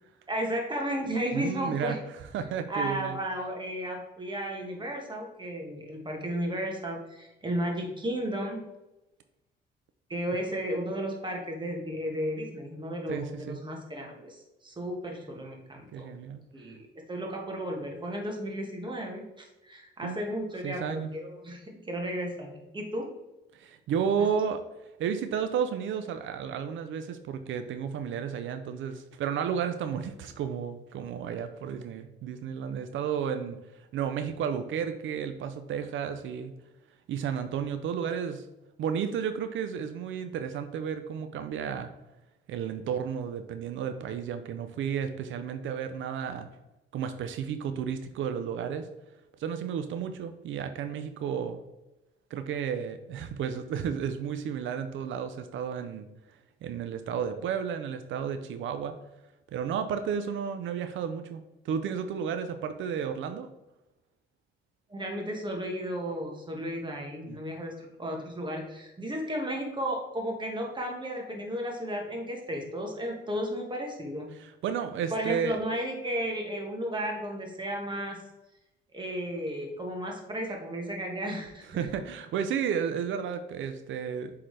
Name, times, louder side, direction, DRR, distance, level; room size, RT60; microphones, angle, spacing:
voice 1, 0.3-2.0 2.7-8.7 10.1-16.1 16.5-23.1 64.9-74.4 75.1-78.2 78.9-81.6, equal, 25° right, 1 dB, 1.6 m, -34 dB
voice 2, 1.3-3.2 13.1-13.6 15.9-16.5 20.0-20.2 20.6-21.1 23.5-24.6 25.0-36.5 37.1-38.5 38.8-41.9 42.5-46.5 46.9-48.9 49.4-51.6 52.3-59.0 59.5-63.5 67.3-67.4 74.3-75.6 81.7-84.4, right 7 dB, 75° right, 8 dB, 0.6 m, -32 dB
7.8 x 3.8 x 3.3 m, 0.97 s
cardioid pair, 90°, 20 cm